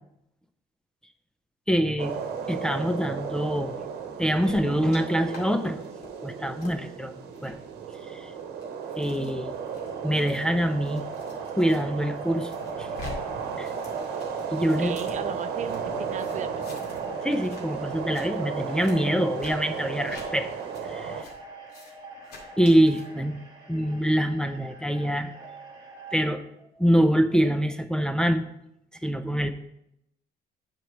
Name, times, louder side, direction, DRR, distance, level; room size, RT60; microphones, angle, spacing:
voice 1, 1.7-2.1 2.5-3.8 4.2-5.8 6.2-7.1 7.4-7.6 8.1-8.3 9.0-9.5 10.0-11.0 11.6-12.5 12.8-12.9 13.6-13.7 14.5-14.9 17.2-20.5 20.8-21.3 22.6-23.4 23.7-25.3 26.1-26.4 26.8-28.5 29.0-29.5, equal, 5° left, 7 dB, 0.5 m, -24 dB
sound 1, 2.0-21.2, right 6 dB, 75° right, 1.0 m, -34 dB
sound 2, 4.4-5.0 5.3-5.4 5.8-6.1 6.6-6.7 7.3-7.5 8.2-11.8 12.1-13.1 13.4-15.8 16.2-17.0 17.3-17.6 17.9-18.3 18.7-18.9 19.4-19.5 20.0-20.3 20.7-20.8 21.2-21.3 21.7-21.9 22.2-23.0, left 4 dB, 75° left, 2.2 m, -46 dB
sound 3, 9.5-26.3, right 2 dB, 25° right, 2.2 m, -46 dB
voice 2, 14.6-16.9, right 8 dB, 45° right, 11 dB, 0.5 m, -36 dB
8.1 x 4.5 x 5.2 m, 0.81 s
cardioid pair, 110°, 17 cm